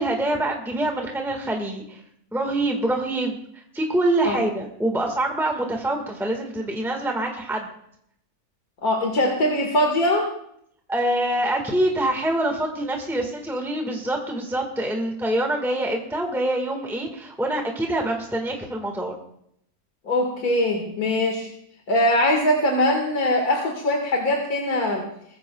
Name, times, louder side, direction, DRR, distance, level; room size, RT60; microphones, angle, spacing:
voice 1, 0.0-2.0 2.3-3.4 3.7-7.7 10.9-19.1, right 1 dB, ahead, 2 dB, 1.5 m, -25 dB
voice 2, 8.8-10.3 20.1-21.5 21.9-25.1, left 1 dB, 75° left, 1 dB, 2.3 m, -22 dB
21.5 x 14.5 x 2.3 m, 0.71 s
omnidirectional pair, 1.6 m